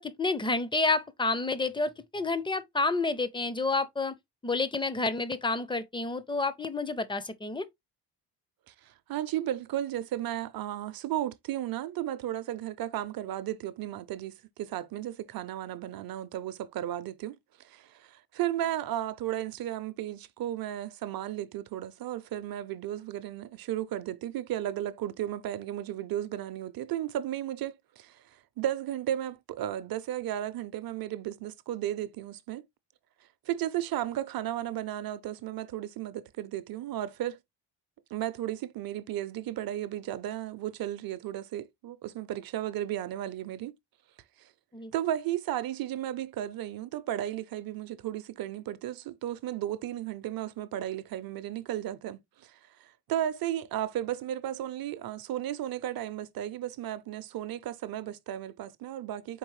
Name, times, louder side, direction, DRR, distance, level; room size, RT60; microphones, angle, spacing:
voice 1, 0.0-4.1 4.4-7.6 44.7-44.9, left 3 dB, 10° left, 0.4 m, -29 dB
voice 2, 9.1-17.3 17.6-28.2 28.6-32.6 33.5-37.4 38.1-43.7 44.4-44.5 44.9-59.4, right 12 dB, 55° right, 0.6 m, -34 dB
4.6 x 3.5 x 3.0 m
cardioid pair, 115°, 42 cm